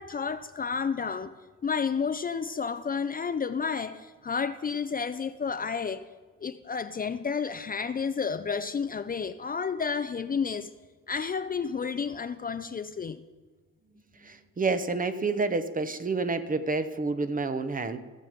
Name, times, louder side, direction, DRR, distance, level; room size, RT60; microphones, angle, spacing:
voice 1, 0.0-1.3 1.6-6.1 6.4-10.7 11.1-13.2, left 6 dB, 30° left, 0.5 m, -31 dB
voice 2, 14.2-18.0, right 3 dB, 30° right, 0.9 m, -29 dB
16.5 x 7.3 x 5.2 m
cardioid pair, 90°, 30 cm